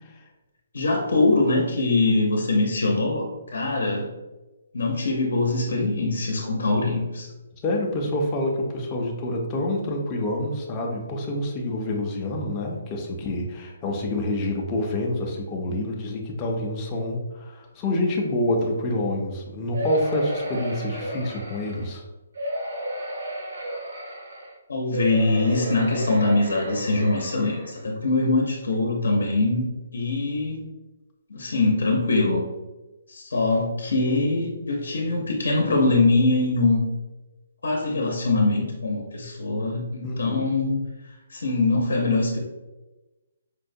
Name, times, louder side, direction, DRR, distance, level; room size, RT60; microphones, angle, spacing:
voice 1, 0.7-4.1 4.7-7.3 24.7-30.6 31.3-32.4 33.1-36.8 37.6-40.8 41.3-42.4, left 2 dB, 85° left, 0 dB, 0.6 m, -23 dB
voice 2, 7.6-22.0 40.0-40.5, left 1 dB, 15° left, -1 dB, 0.4 m, -27 dB
sound 1, 19.7-21.9 22.4-24.5 24.9-27.8 28.4-28.5 28.7-28.8, equal, 80° right, 0.8 m, -32 dB
4.4 x 2.1 x 2.6 m, 1.1 s
hypercardioid pair, 170°, 0 cm